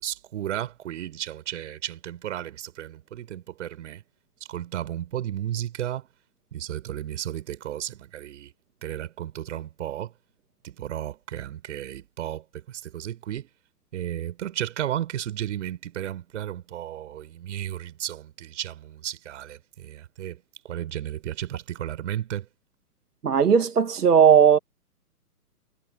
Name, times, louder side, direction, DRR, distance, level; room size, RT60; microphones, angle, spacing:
voice 1, 0.0-4.0 4.5-6.1 6.5-8.5 8.8-10.1 10.6-13.5 13.9-20.4 20.7-22.5, right 11 dB, 50° right, 6.6 m, -33 dB
voice 2, 23.2-24.6, right 7 dB, 75° right, 2.8 m, -17 dB
hypercardioid pair, 140°, 46 cm